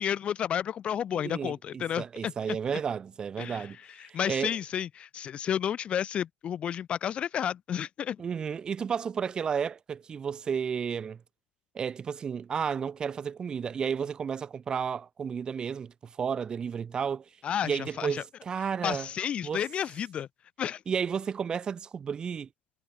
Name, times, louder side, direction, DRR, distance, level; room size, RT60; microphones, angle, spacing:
voice 1, 0.0-2.6 3.4-8.2 17.4-18.2 18.8-20.3 20.6-20.8, left 9 dB, 25° left, 2.2 m, -31 dB
voice 2, 1.2-3.8 4.1-4.6 8.2-11.2 11.7-17.2 17.6-19.1 19.4-19.6 20.9-22.5, right 7 dB, 20° right, 0.9 m, -32 dB
hypercardioid pair, 115°, 5 cm